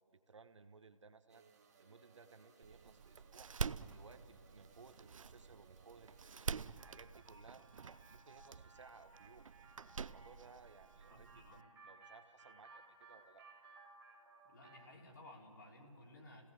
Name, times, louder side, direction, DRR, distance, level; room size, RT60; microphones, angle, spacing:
voice 1, 0.1-1.4 1.8-3.5 3.9-7.7 8.1-9.4 10.0-11.6 11.8-12.8 13.1-13.5, right 4 dB, 65° right, 9 dB, 1.3 m, -61 dB
sound 1, 1.3-6.7, right 5 dB, 30° right, 1.7 m, -67 dB
Door, 2.6-11.6, right 6 dB, 85° right, 0.6 m, -47 dB
sound 2, 6.8-14.9, right 3 dB, 5° right, 1.5 m, -61 dB
voice 2, 11.1-11.7 14.4-16.5, left 1 dB, 40° left, 0 dB, 3.4 m, -57 dB
30.0 x 17.0 x 7.7 m, 2.8 s
hypercardioid pair, 170°, 16 cm